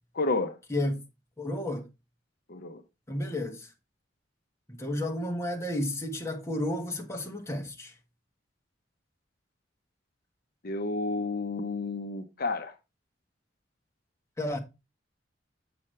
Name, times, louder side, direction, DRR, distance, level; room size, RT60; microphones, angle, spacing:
voice 1, 0.1-0.6 2.5-2.8 10.6-12.7, left 3 dB, 55° left, 0.8 m, -31 dB
voice 2, 0.7-1.0 1.4-1.9 3.1-3.7 4.7-7.9 14.4-14.6, left 1 dB, 15° left, 1.4 m, -32 dB
7.7 x 7.1 x 3.2 m
head